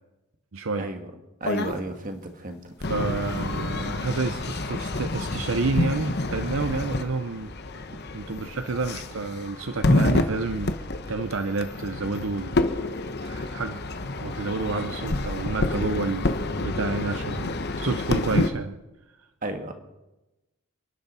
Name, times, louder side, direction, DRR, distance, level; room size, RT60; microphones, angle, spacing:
voice 1, 0.5-0.9 2.9-7.5 8.1-10.7 11.1-12.6 12.9-13.8 14.2-16.3 16.6-18.8, right 3 dB, 60° right, 9 dB, 0.6 m, -29 dB
sound 1, 1.4-1.8 2.8-18.5, left 2 dB, 45° left, 1.0 m, -28 dB
voice 2, 1.4-2.9 19.4-19.7, right 1 dB, 35° right, 5 dB, 1.7 m, -33 dB
28.5 x 10.5 x 4.2 m, 1.0 s
head